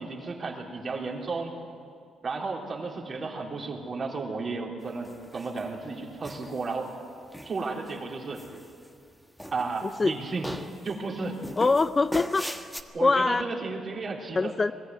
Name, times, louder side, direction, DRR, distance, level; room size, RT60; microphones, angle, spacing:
voice 1, 0.0-1.5 2.2-6.9 7.4-8.4 9.5-10.5 10.8-11.4 12.9-14.5, right 3 dB, 40° right, -1 dB, 3.7 m, -33 dB
sound 1, 5.0-5.7 6.2-6.9 7.3-7.9 8.3-9.1 9.4-10.1 10.4-10.9 11.4-12.8, equal, ahead, 1.3 m, -38 dB
voice 2, 11.6-12.5 13.0-13.4 14.4-14.7, left 3 dB, 30° left, 13 dB, 0.5 m, -23 dB
21.5 x 14.5 x 9.6 m, 2.3 s
cardioid pair, 90°, 0 cm